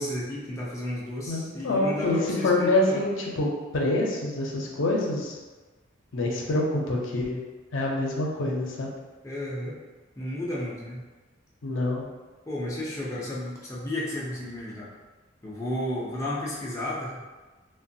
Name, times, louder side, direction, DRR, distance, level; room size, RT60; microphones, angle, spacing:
voice 1, 0.0-3.0 9.2-9.8 10.2-11.1 12.5-14.9 15.4-17.2, left 1 dB, 15° left, -6 dB, 0.4 m, -32 dB
voice 2, 1.3-5.4 6.1-7.4 7.7-8.9 11.6-12.1, left 2 dB, 75° left, -2 dB, 0.5 m, -26 dB
3.0 x 2.2 x 2.6 m, 1.3 s
head